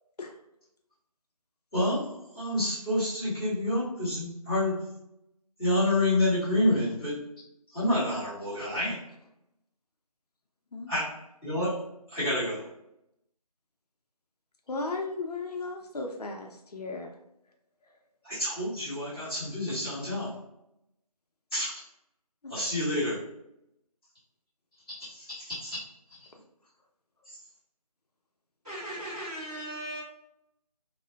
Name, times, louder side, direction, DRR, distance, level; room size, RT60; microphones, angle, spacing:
voice 1, 1.7-4.8 5.6-7.2 7.7-9.0 10.9-11.1 11.4-12.6 18.3-20.4 21.5-21.8 22.5-23.2 25.0-25.8 26.1-26.3 27.2-27.4, left 1 dB, 10° left, -13 dB, 1.3 m, -28 dB
voice 2, 14.7-17.1 22.4-22.5, left 3 dB, 75° left, 2 dB, 0.5 m, -35 dB
voice 3, 28.6-30.0, right 1 dB, 10° right, -18 dB, 1.2 m, -37 dB
2.5 x 2.1 x 2.4 m, 0.85 s
figure-of-eight pair, 175°, 20 cm